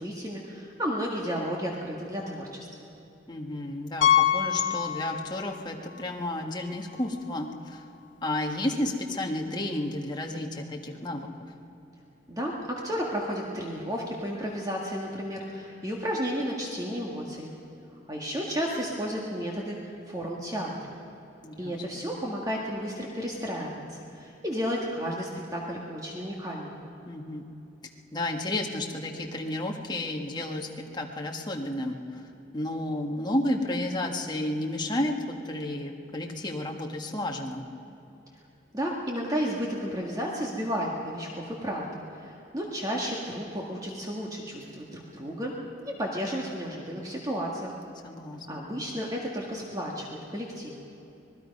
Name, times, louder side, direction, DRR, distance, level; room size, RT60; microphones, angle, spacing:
voice 1, 0.0-2.9 12.3-17.5 18.1-21.0 21.6-26.8 38.7-45.6 45.9-47.8 48.5-50.7, equal, 20° right, -2 dB, 1.8 m, -33 dB
voice 2, 3.3-7.8 8.2-11.3 21.4-22.0 27.0-27.4 28.1-32.3 32.5-37.6 48.0-48.7, left 1 dB, 25° left, 0 dB, 1.7 m, -32 dB
Piano, 4.0-5.6 5.9-6.0 6.6-6.7 7.0-7.1 9.1-9.2, left 10 dB, 75° left, 1.2 m, -25 dB
26.0 x 20.0 x 5.4 m, 2.9 s
head